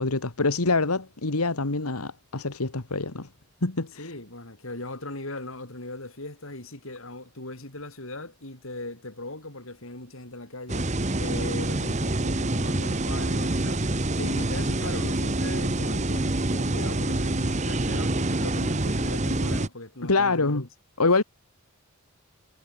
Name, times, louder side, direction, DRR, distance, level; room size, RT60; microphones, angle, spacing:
voice 1, 0.0-3.3 3.6-4.1 20.1-20.6 21.0-21.2, left 3 dB, 90° left, 1.8 m, -25 dB
voice 2, 4.0-10.9 11.2-13.8 14.2-20.7, left 2 dB, 65° left, 4.5 m, -39 dB
sound 1, 10.7-19.7, right 2 dB, 30° right, 1.2 m, -26 dB
head